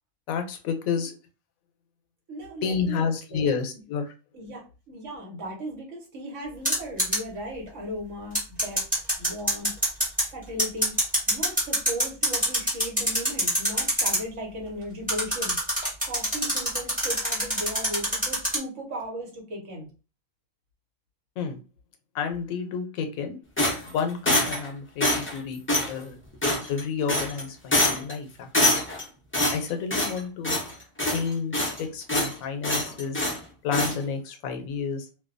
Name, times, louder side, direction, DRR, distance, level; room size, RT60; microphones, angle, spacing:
voice 1, 0.3-1.1 2.6-4.1 21.4-21.6 22.1-23.4 23.8-25.6 25.9-26.2 26.7-28.5 29.5-30.6 31.1-33.2 33.6-35.1, left 6 dB, 85° left, 5 dB, 1.0 m, -30 dB
voice 2, 2.3-3.5 4.3-8.8 9.2-9.7 10.3-10.9 11.3-15.5 16.0-19.9, equal, 65° right, -1 dB, 1.2 m, -37 dB
sound 1, 6.7-7.2 8.3-10.2 10.6-14.2 15.1-18.6, equal, 5° right, 1.0 m, -24 dB
sound 2, 23.6-24.7 25.0-25.4 25.7-25.9 26.4-26.8 27.1-27.4 27.7-28.1 28.5-29.0 29.3-30.2 30.4-30.7 31.0-31.8 32.1-32.3 32.6-33.4 33.7-33.9, left 1 dB, 20° left, 0.3 m, -24 dB
2.6 x 2.2 x 2.4 m, 0.33 s
omnidirectional pair, 1.4 m